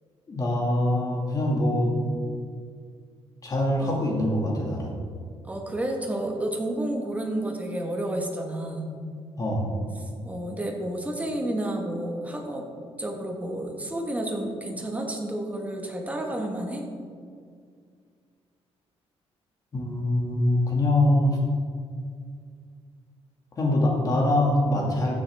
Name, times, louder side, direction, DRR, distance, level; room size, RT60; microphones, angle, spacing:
voice 1, 0.3-1.9 3.4-5.0 9.4-9.7 19.7-21.4 23.6-25.1, left 1 dB, 35° left, -2 dB, 2.1 m, -23 dB
voice 2, 5.4-8.9 10.2-12.6 13.0-16.8, right 1 dB, 15° right, 2 dB, 1.4 m, -30 dB
14.0 x 7.3 x 3.5 m, 2.1 s
cardioid pair, 140°, 11 cm